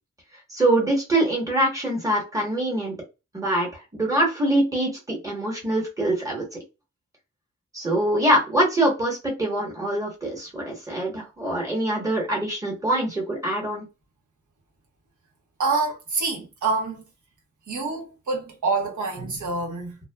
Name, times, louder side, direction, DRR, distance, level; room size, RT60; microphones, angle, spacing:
voice 1, 0.5-2.9 3.3-6.4 7.7-13.8, right 1 dB, 10° right, 1.0 m, -24 dB
voice 2, 15.6-17.0 17.7-20.0, right 3 dB, 85° right, 1.0 m, -26 dB
2.5 x 2.3 x 2.2 m
wide cardioid pair, 150°, 29 cm